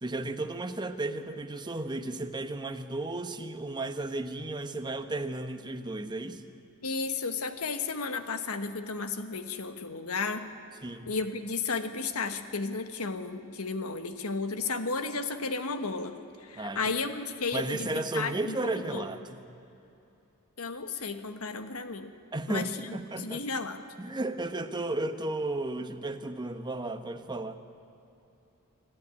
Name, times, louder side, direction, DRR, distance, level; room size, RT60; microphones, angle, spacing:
voice 1, 0.0-6.4 10.8-11.1 16.5-16.9 17.5-19.4 22.3-23.4 24.0-27.6, right 2 dB, 20° right, 7 dB, 1.0 m, -34 dB
voice 2, 6.8-10.4 11.1-16.1 16.4-18.6 18.9-19.1 20.6-22.1 22.5-23.8, left 4 dB, 75° left, 9 dB, 1.4 m, -33 dB
26.0 x 13.5 x 9.9 m, 2.7 s
head